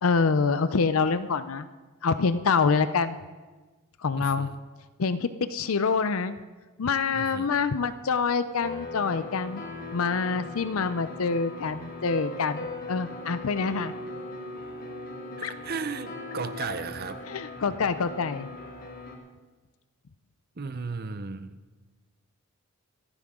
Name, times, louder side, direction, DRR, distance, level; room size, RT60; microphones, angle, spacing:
voice 1, 0.0-1.7 2.0-3.2 4.0-4.5 5.0-6.3 6.8-9.6 9.9-13.9 15.4-15.5 17.3-18.5, left 5 dB, 70° left, 12 dB, 0.5 m, -26 dB
voice 2, 4.1-4.5 7.1-7.5 15.4-17.2 20.6-21.6, right 4 dB, 45° right, 12 dB, 0.6 m, -35 dB
sound 1, 8.6-19.2, left 2 dB, 40° left, 1.7 m, -39 dB
25.5 x 9.8 x 3.7 m, 1.3 s
head